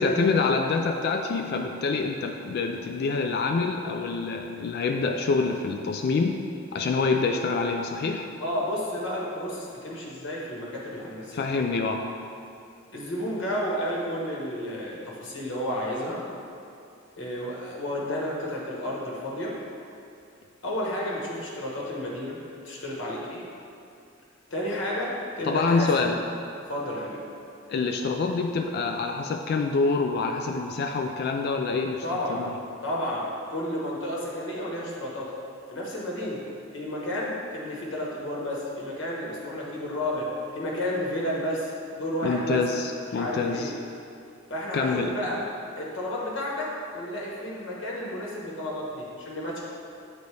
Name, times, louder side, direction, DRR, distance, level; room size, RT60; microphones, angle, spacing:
voice 1, 0.0-6.4 6.7-8.3 11.3-12.1 25.4-26.2 27.7-32.0 32.3-32.4 42.2-43.7 44.7-45.1, left 4 dB, 55° left, 4 dB, 0.3 m, -26 dB
voice 2, 8.4-11.4 12.9-16.2 17.2-19.6 20.6-22.4 22.6-23.4 24.5-26.1 26.7-27.2 32.0-32.4 32.8-35.4 35.7-36.4 36.7-40.3 40.5-42.6 43.1-43.7 44.5-45.4 45.8-49.6, left 1 dB, 70° left, -4 dB, 1.3 m, -31 dB
8.1 x 4.0 x 3.3 m, 2.5 s
head